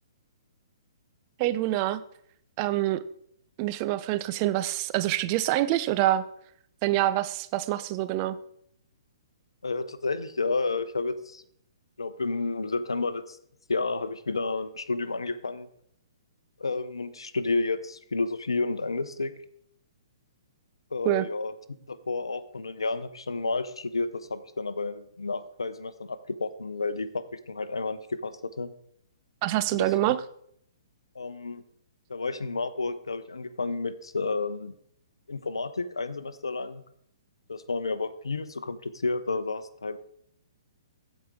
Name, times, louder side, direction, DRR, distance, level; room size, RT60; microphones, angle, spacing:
voice 1, 1.4-2.0 2.6-3.0 3.6-6.2 6.8-8.4 21.0-21.3 29.4-30.2, right 15 dB, 35° right, 13 dB, 0.5 m, -26 dB
voice 2, 9.6-11.4 12.0-13.4 13.7-15.7 16.6-19.3 20.9-28.7 29.7-29.9 31.1-31.6 32.1-34.7 35.3-36.8 37.5-40.0, left 3 dB, 80° left, 14 dB, 0.7 m, -31 dB
15.5 x 5.1 x 3.6 m, 0.67 s
figure-of-eight pair, 125°, 3 cm